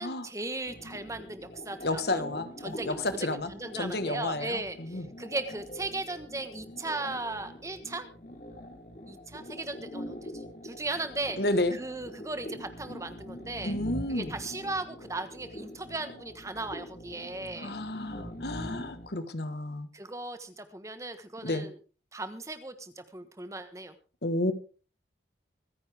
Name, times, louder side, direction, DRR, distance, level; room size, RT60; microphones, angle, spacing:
voice 1, 0.0-2.2 2.6-8.1 9.1-11.4 11.7-13.8 14.1-17.8 19.9-21.8 22.1-23.9, right 2 dB, 15° right, 10 dB, 1.3 m, -37 dB
sound 1, 0.7-19.1, equal, 50° left, 2.6 m, -43 dB
voice 2, 1.8-5.1 11.4-11.8 13.6-14.3 17.6-19.9 21.4-21.7 24.2-24.5, left 2 dB, 65° left, 10 dB, 1.4 m, -31 dB
25.0 x 9.8 x 3.5 m, 0.35 s
head